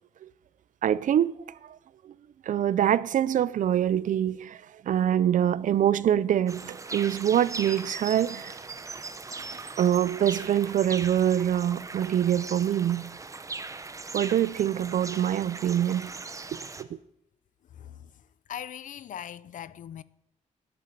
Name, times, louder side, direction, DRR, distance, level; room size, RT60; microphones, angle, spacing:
voice 1, 0.8-1.3 1.6-1.8 2.0-2.1 2.5-8.5 9.8-13.1 14.1-16.1 16.8-17.0, right 10 dB, 75° right, 0.5 m, -25 dB
sound 1, 6.5-16.8, right 3 dB, 25° right, 0.8 m, -39 dB
voice 2, 17.7-18.1 18.5-20.0, left 10 dB, 75° left, 0.6 m, -40 dB
11.0 x 9.1 x 8.8 m
wide cardioid pair, 145°, 13 cm